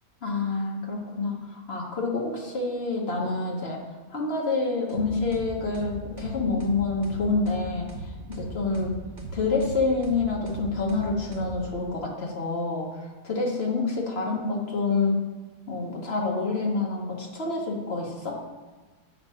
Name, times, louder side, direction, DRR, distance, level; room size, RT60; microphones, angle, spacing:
voice 1, 0.2-3.8 4.1-7.9 8.3-9.0 9.3-15.2 15.7-18.4, left 3 dB, 40° left, -1 dB, 1.3 m, -27 dB
sound 1, 4.9-12.0, right 3 dB, 35° right, 0.9 m, -39 dB
7.9 x 4.5 x 5.5 m, 1.3 s
omnidirectional pair, 1.8 m